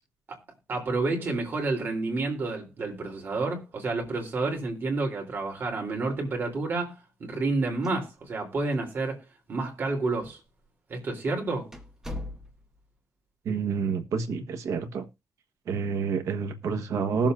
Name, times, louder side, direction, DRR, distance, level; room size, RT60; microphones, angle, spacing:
voice 1, 0.7-10.4 10.9-11.7, right 3 dB, 40° right, 3.3 m, -30 dB
sound 1, 7.8-8.5 8.7-8.8 9.6-9.7 10.5-10.7 11.1-11.2 11.7-12.8, left 1 dB, 10° right, 1.3 m, -40 dB
voice 2, 13.4-15.1 15.7-17.3, right 5 dB, 70° right, 1.3 m, -28 dB
20.0 x 7.3 x 2.5 m
wide cardioid pair, 165°, 5 cm